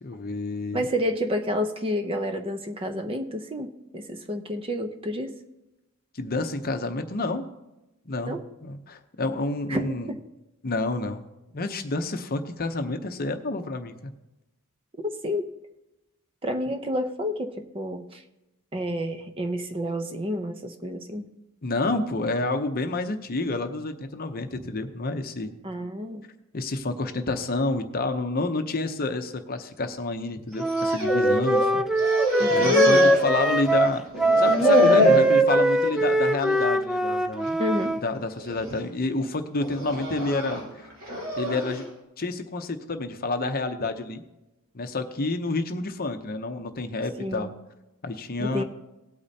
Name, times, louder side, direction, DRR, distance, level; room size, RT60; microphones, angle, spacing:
voice 1, 0.0-0.9 6.1-7.5 8.1-10.1 10.6-11.2 11.5-14.1 21.6-25.5 26.5-31.9 32.5-34.0 34.4-37.6 38.0-40.6 41.4-41.9 42.2-44.2 44.7-47.5 48.0-48.6, left 2 dB, 45° left, 7 dB, 0.7 m, -29 dB
voice 2, 0.7-5.3 8.2-8.4 9.7-10.1 15.0-15.5 16.4-18.2 18.7-21.2 25.6-26.2 32.4-33.1 37.6-37.9 47.2-47.5 48.4-48.6, equal, 25° right, 6 dB, 0.7 m, -30 dB
Wind instrument woodwind instrument, 30.6-38.0, equal, ahead, 0.3 m, -21 dB
sound 1, 30.6-31.7 32.0-33.8 34.1-35.3 35.8-36.1 36.5-36.7 37.5-37.9 38.4-38.8 39.6-41.8, equal, 70° right, 3.4 m, -26 dB
18.0 x 8.5 x 2.8 m, 0.96 s
head